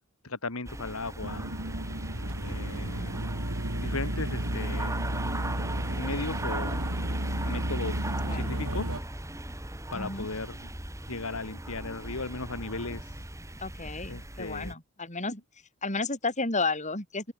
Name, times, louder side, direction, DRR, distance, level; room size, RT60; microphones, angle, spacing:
voice 1, 0.2-1.5 2.4-3.1 3.5-5.0 5.9-6.8 7.4-9.0 9.9-10.7 11.1-13.2 14.1-14.7, left 3 dB, 80° left, 2.2 m, -37 dB
sound 1, 0.6-14.7, right 1 dB, 15° right, 3.8 m, -39 dB
sound 2, 1.2-9.0, right 1 dB, 80° right, 4.5 m, -32 dB
voice 2, 2.8-3.3 8.3-8.5 9.9-10.3 13.6-17.3, left 3 dB, 35° left, 7.5 m, -33 dB
open air
head